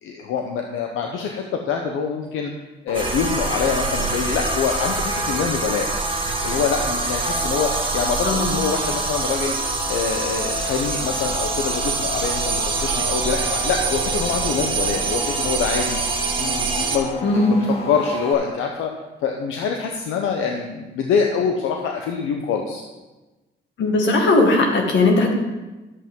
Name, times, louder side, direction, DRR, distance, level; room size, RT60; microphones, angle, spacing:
voice 1, 0.0-2.5 2.8-5.9 6.4-9.5 9.9-16.0 16.4-17.1 17.5-18.9 19.2-22.8, left 6 dB, 90° left, 2 dB, 0.8 m, -25 dB
sound 1, 2.9-18.3, left 2 dB, 30° left, 1.7 m, -33 dB
sound 2, 2.9-17.0, right 4 dB, 25° right, 1.6 m, -25 dB
voice 2, 17.2-17.5 23.8-25.3, left 2 dB, 65° left, 2 dB, 1.9 m, -18 dB
11.0 x 7.6 x 3.7 m, 1.1 s
cardioid pair, 90°, 20 cm